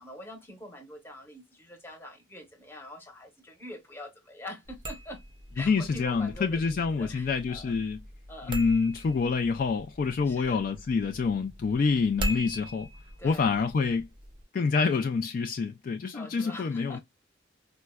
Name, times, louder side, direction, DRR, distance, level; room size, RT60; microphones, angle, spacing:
voice 1, 0.0-5.2 5.5-7.7 8.3-8.6 10.2-10.7 13.2-13.6 16.1-17.0, left 1 dB, 10° left, 0.9 m, -44 dB
sound 1, 4.7-14.4, equal, 25° right, 0.4 m, -40 dB
voice 2, 5.6-8.0 8.5-12.9 13.2-14.1 14.5-17.0, left 5 dB, 45° left, 0.3 m, -27 dB
4.4 x 2.0 x 2.2 m
head